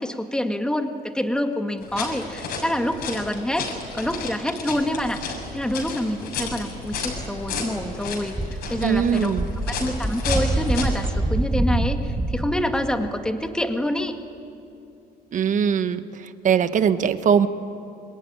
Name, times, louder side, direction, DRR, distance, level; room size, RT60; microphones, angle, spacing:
voice 1, 0.0-3.7 3.9-8.3 8.7-9.3 9.7-14.1, left 1 dB, 5° left, 6 dB, 1.9 m, -26 dB
sound 1, 1.8-11.1, left 4 dB, 70° left, 6.7 m, -33 dB
sound 2, 6.8-7.9 8.3-12.5, right 2 dB, 10° right, 1.9 m, -26 dB
voice 2, 8.8-9.5 15.3-17.5, right 7 dB, 50° right, 11 dB, 1.3 m, -21 dB
27.0 x 22.0 x 9.9 m, 2.6 s
cardioid pair, 110°, 17 cm